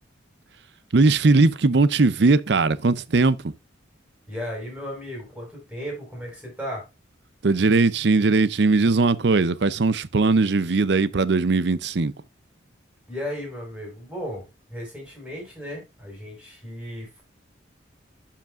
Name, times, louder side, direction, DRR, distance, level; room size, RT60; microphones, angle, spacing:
voice 1, 0.9-3.5 7.4-12.1, right 3 dB, 65° right, 0.6 m, -19 dB
voice 2, 4.3-6.9 13.1-17.2, equal, 5° right, 5.7 m, -35 dB
11.5 x 5.9 x 2.5 m
head